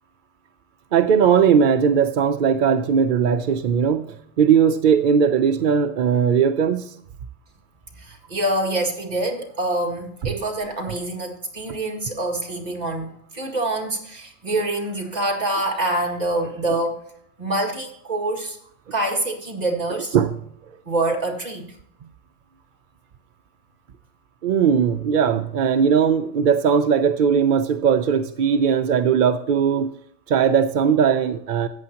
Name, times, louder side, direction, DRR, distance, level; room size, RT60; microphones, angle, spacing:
voice 1, 0.9-6.9 20.1-20.3 24.4-29.9 30.3-31.7, right 7 dB, 60° right, 8 dB, 0.5 m, -19 dB
voice 2, 8.0-17.0 17.4-18.6 18.9-20.2 20.9-21.6, right 1 dB, 30° right, 1 dB, 2.1 m, -25 dB
14.0 x 8.6 x 2.9 m, 0.69 s
omnidirectional pair, 1.4 m